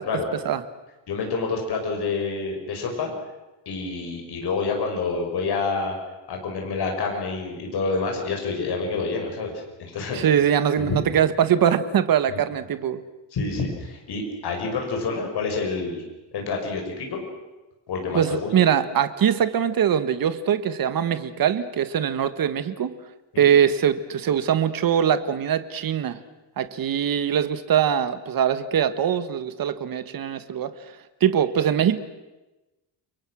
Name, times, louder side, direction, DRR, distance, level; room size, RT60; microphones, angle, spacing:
voice 1, 1.1-3.1 3.7-6.0 6.3-9.5 9.8-10.3 10.8-11.0 12.3-12.4 13.3-16.0 16.3-17.2 17.9-18.7 23.3-23.5, left 4 dB, 55° left, 2 dB, 5.8 m, -28 dB
voice 2, 10.1-13.0 18.1-22.9 23.4-26.2 26.6-30.7 31.2-32.0, right 9 dB, 50° right, 12 dB, 1.5 m, -22 dB
30.0 x 23.5 x 6.4 m, 1.1 s
cardioid pair, 165°, 46 cm